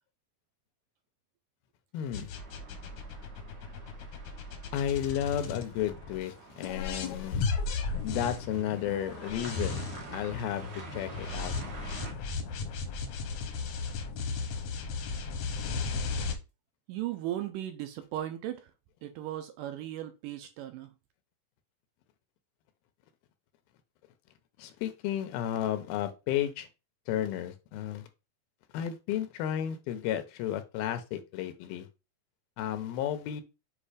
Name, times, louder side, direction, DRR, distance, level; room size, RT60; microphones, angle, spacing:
voice 1, 1.9-2.3 4.7-7.5 8.0-9.9 10.1-11.5 24.6-26.7 27.1-28.1 28.7-31.9 32.6-33.4, left 11 dB, 90° left, 2.7 m, -33 dB
sound 1, 2.1-6.2 6.6-16.4, left 4 dB, 70° left, 1.7 m, -35 dB
sound 2, 2.4-12.1, right 3 dB, 65° right, 1.0 m, -48 dB
voice 2, 16.9-18.7 19.0-20.9, right 13 dB, 80° right, 2.0 m, -37 dB
7.6 x 2.6 x 4.9 m
omnidirectional pair, 4.2 m